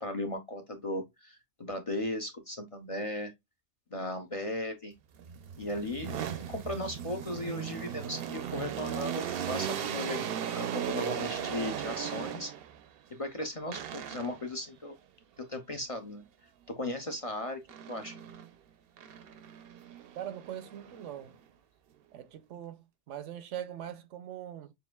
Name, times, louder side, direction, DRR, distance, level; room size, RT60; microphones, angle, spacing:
voice 1, 0.0-3.3 3.9-4.9 5.6-6.2 6.5-12.5 13.1-14.9 15.4-16.2 16.7-17.6 17.9-18.1, left 1 dB, 35° left, 0.6 m, -36 dB
sound 1, 5.2-12.8 13.7-14.5 17.7-18.5 19.0-21.3, right 9 dB, 60° right, 0.7 m, -37 dB
voice 2, 20.1-21.4 22.1-24.7, right 10 dB, 85° right, 1.0 m, -42 dB
6.8 x 2.5 x 2.2 m
omnidirectional pair, 1.2 m